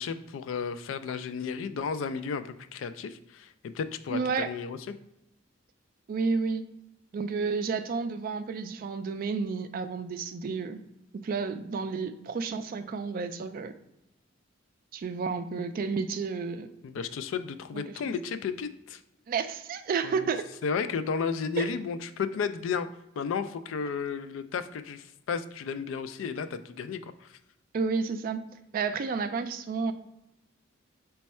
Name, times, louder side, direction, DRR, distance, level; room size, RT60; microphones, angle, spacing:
voice 1, 0.0-4.8 16.8-19.0 20.0-20.3 20.6-22.9 23.2-27.4, left 6 dB, 75° left, 11 dB, 0.3 m, -33 dB
voice 2, 4.1-4.5 6.1-6.6 7.1-10.8 11.1-13.7 14.9-16.7 17.7-18.1 19.3-20.4 21.6-21.7 27.7-28.4 28.7-29.9, right 5 dB, 45° right, 9 dB, 0.3 m, -31 dB
4.2 x 2.3 x 4.1 m, 0.88 s
head